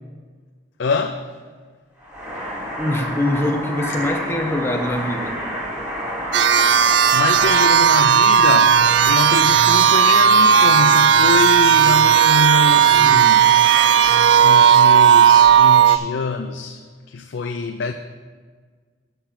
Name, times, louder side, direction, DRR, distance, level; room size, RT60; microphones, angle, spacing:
voice 1, 0.8-1.3 7.1-13.5 14.4-17.9, left 4 dB, 70° left, 5 dB, 0.5 m, -25 dB
sound 1, 2.0-15.6, right 1 dB, 10° right, 2.7 m, -30 dB
voice 2, 2.8-5.4, left 1 dB, 15° left, 3 dB, 0.8 m, -23 dB
sound 2, 6.3-16.0, right 8 dB, 65° right, 0.4 m, -14 dB
8.2 x 7.0 x 5.9 m, 1.5 s
head